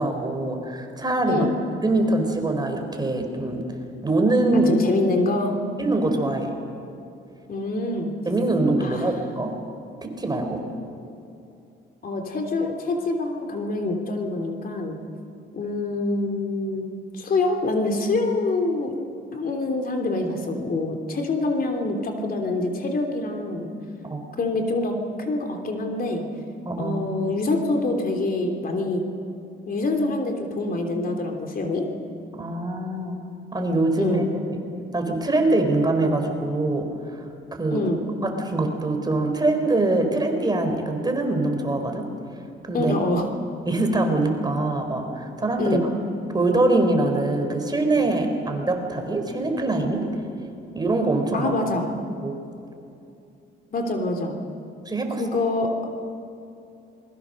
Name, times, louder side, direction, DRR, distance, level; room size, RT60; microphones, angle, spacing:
voice 1, 0.0-1.5 1.8-3.6 4.0-4.7 5.8-6.5 8.3-9.5 10.0-10.7 24.0-24.3 26.7-27.0 32.3-33.2 33.5-34.2 34.5-34.6 34.9-37.9 38.2-42.1 42.6-42.9 43.7-45.8 46.3-50.1 50.7-51.5 52.2-52.4 54.8-55.2, right 2 dB, 20° right, 4 dB, 4.1 m, -23 dB
voice 2, 4.7-5.6 7.5-8.1 8.8-9.1 12.0-15.0 15.5-16.9 17.1-18.9 19.3-23.7 24.4-26.2 26.8-29.0 29.7-31.9 34.0-34.3 37.7-38.0 42.7-43.3 45.6-45.9 51.3-51.9 53.7-54.3 55.2-55.7, left 2 dB, 45° left, 3 dB, 3.2 m, -25 dB
27.5 x 21.5 x 6.5 m, 2.6 s
cardioid pair, 90°, 20 cm